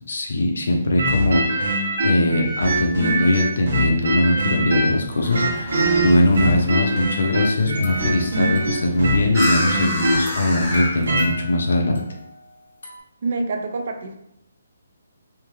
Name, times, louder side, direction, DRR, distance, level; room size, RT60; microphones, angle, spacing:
voice 1, 0.1-12.0, left 1 dB, 60° left, 2 dB, 0.8 m, -21 dB
sound 1, 1.0-5.0 5.3-11.3, right 1 dB, 60° right, 1.1 m, -23 dB
sound 2, 4.8-11.3, left 1 dB, 10° left, 0.7 m, -32 dB
sound 3, 7.7-13.0, left 2 dB, 75° left, 1.4 m, -37 dB
voice 2, 13.2-14.2, right 3 dB, 40° right, 5 dB, 0.4 m, -26 dB
3.5 x 3.2 x 3.2 m, 0.78 s
hypercardioid pair, 180°, 0 cm